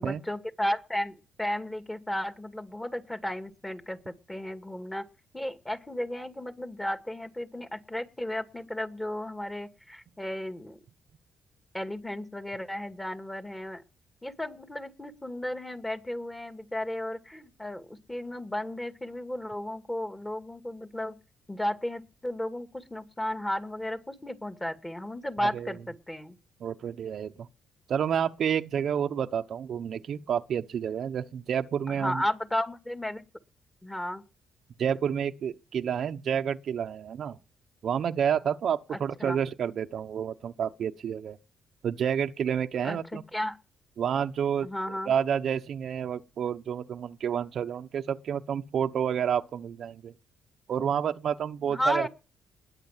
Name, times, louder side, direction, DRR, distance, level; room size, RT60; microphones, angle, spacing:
voice 1, 0.0-5.1 5.3-10.8 11.7-13.8 14.2-21.1 21.5-26.4 31.9-33.2 33.8-34.2 38.9-39.4 42.8-43.0 43.3-43.6 44.6-45.1 51.7-52.1, left 1 dB, 15° left, 2.2 m, -34 dB
voice 2, 25.4-25.7 26.6-27.5 27.9-32.2 34.8-37.4 37.8-41.4 41.8-43.2 44.0-50.1 50.7-52.1, right 8 dB, 60° right, 1.0 m, -29 dB
20.5 x 8.9 x 7.4 m
cardioid pair, 90°, 0 cm